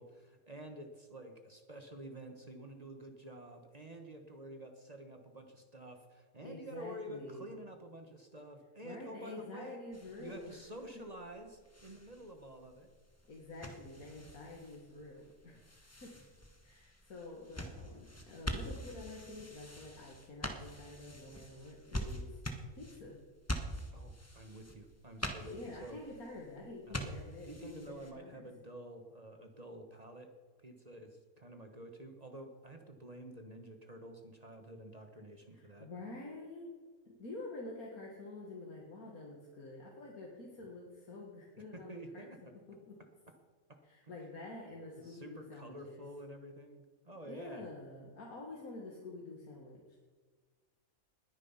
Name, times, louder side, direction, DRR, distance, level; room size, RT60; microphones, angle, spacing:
voice 1, 0.0-9.8 10.2-12.9 15.5-15.8 23.9-26.0 26.9-27.1 27.4-30.3 30.6-35.9 41.7-42.5 43.7-44.1 45.0-47.7, right 1 dB, 30° right, 5 dB, 1.4 m, -50 dB
voice 2, 6.4-7.5 8.8-10.6 13.3-16.1 16.6-22.4 22.7-23.2 25.5-27.8 28.2-28.4 35.5-36.7 37.1-42.3 42.7-43.0 43.8-46.0 47.3-50.0, left 2 dB, 85° left, -2 dB, 2.4 m, -48 dB
sound 1, 9.9-28.1, equal, 10° left, 1.2 m, -45 dB
20.0 x 9.6 x 5.7 m, 1.5 s
omnidirectional pair, 1.5 m